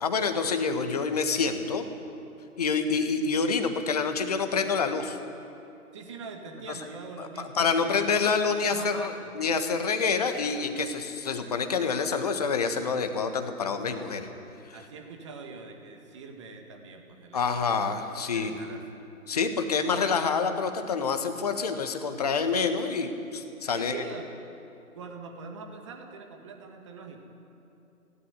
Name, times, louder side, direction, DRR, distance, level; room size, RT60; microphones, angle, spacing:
voice 1, 0.0-1.8 2.6-5.2 7.2-14.3 17.3-18.6 19.3-23.9, left 5 dB, 25° left, 7 dB, 1.5 m, -27 dB
voice 2, 5.9-8.1 8.6-9.3 14.7-17.8 18.3-19.0 23.7-24.3 24.9-27.2, right 4 dB, 20° right, 3 dB, 2.0 m, -43 dB
18.5 x 17.0 x 9.7 m, 2.7 s
figure-of-eight pair, 145°, 44 cm